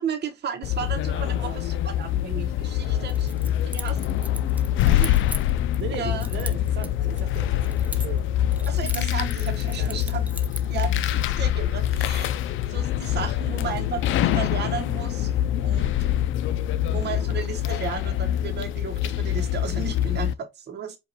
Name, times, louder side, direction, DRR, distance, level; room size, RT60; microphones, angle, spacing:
voice 1, 0.0-3.4 3.6-4.0 4.9-5.2 5.9-6.3 8.7-10.3 10.7-15.3 15.6-16.1 16.9-21.0, right 7 dB, 60° right, 0.9 m, -34 dB
sound 1, 0.6-20.3, left 11 dB, 80° left, 0.4 m, -25 dB
voice 2, 1.1-1.6 2.8-3.1 5.8-8.3 8.6-8.7 9.8-10.0, right 7 dB, 75° right, 1.1 m, -38 dB
Keys jangling, 3.1-5.8 6.2-8.3 8.5-10.8, right 1 dB, 5° right, 0.7 m, -39 dB
5.0 x 2.4 x 4.0 m
cardioid pair, 90°, 20 cm